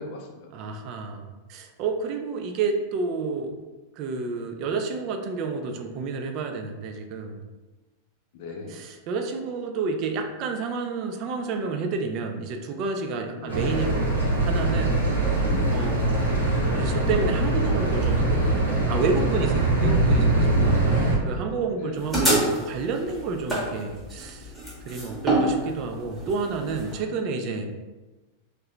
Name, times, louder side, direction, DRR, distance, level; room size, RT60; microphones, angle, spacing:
voice 1, 0.0-0.5 8.3-8.8 13.4-13.7 15.4-15.8 19.9-20.3 21.7-22.1, left 2 dB, 45° left, 1 dB, 0.5 m, -37 dB
voice 2, 0.5-3.5 4.0-7.4 8.7-15.0 15.7-16.3 16.7-24.5 24.9-27.7, right 4 dB, 40° right, 4 dB, 0.4 m, -30 dB
sound 1, 13.5-21.2, right 2 dB, 75° right, 0.7 m, -22 dB
sound 2, 22.0-27.0, right 1 dB, 5° left, 0.9 m, -26 dB
2.6 x 2.1 x 3.1 m, 1.2 s
figure-of-eight pair, 90°, 0 cm